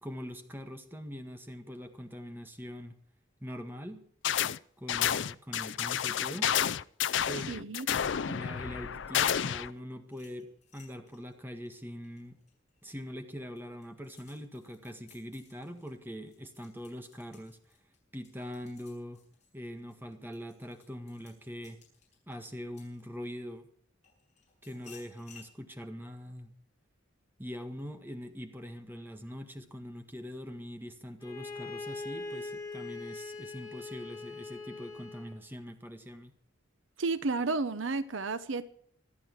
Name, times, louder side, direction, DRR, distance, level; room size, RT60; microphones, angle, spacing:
voice 1, 0.0-3.0 3.4-4.0 4.8-6.6 7.3-7.7 8.3-12.4 12.8-17.6 18.1-19.2 19.5-21.8 22.3-23.7 24.6-26.5 27.4-36.3, equal, 10° right, 1.7 m, -43 dB
sound 1, 4.2-4.6 4.9-9.7, left 9 dB, 65° left, 0.5 m, -30 dB
voice 2, 7.5-7.9 37.0-38.7, right 3 dB, 70° right, 0.8 m, -32 dB
sound 2, 10.0-12.9 13.3-23.5 24.0-25.5, left 7 dB, 35° left, 7.9 m, -60 dB
Bowed string instrument, 31.2-35.4, left 3 dB, 20° left, 3.6 m, -42 dB
26.5 x 9.3 x 4.6 m
head